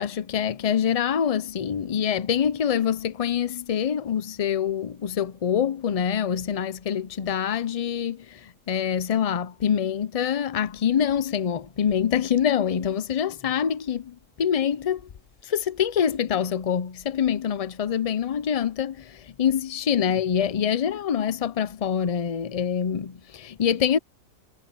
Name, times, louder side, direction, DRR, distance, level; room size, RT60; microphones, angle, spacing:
voice 1, 0.0-15.0 15.4-24.0, left 8 dB, 70° left, 0.3 m, -25 dB
omnidirectional pair, 1.5 m